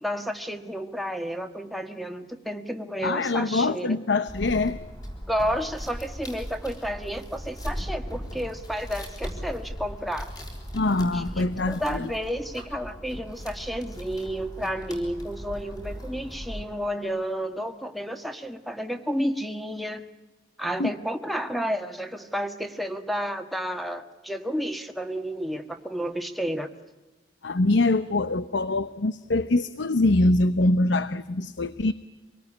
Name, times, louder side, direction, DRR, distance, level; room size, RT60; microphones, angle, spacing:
voice 1, 0.0-4.0 5.3-10.3 11.1-20.1 20.6-26.7, equal, ahead, 8 dB, 1.5 m, -31 dB
voice 2, 3.0-4.8 10.7-12.1 20.8-20.9 27.4-31.9, left 2 dB, 75° left, 14 dB, 0.8 m, -24 dB
sound 1, 4.3-16.6, equal, 20° left, 5.4 m, -38 dB
26.0 x 18.5 x 9.9 m, 1.1 s
head